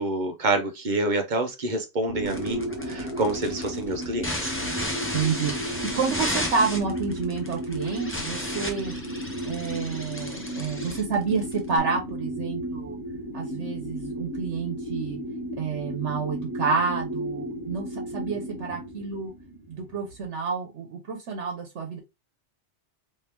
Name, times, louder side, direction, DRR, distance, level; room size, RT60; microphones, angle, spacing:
voice 1, 0.0-4.5, right 2 dB, 45° right, 0.8 m, -27 dB
sound 1, 2.1-20.2, equal, 55° left, 1.2 m, -34 dB
sound 2, 2.2-11.8, left 1 dB, 15° left, 0.8 m, -34 dB
voice 2, 5.1-8.9 9.5-13.0 13.3-15.2 15.6-19.3 19.7-22.0, right 5 dB, 85° right, 1.2 m, -29 dB
3.1 x 3.0 x 3.4 m
omnidirectional pair, 1.2 m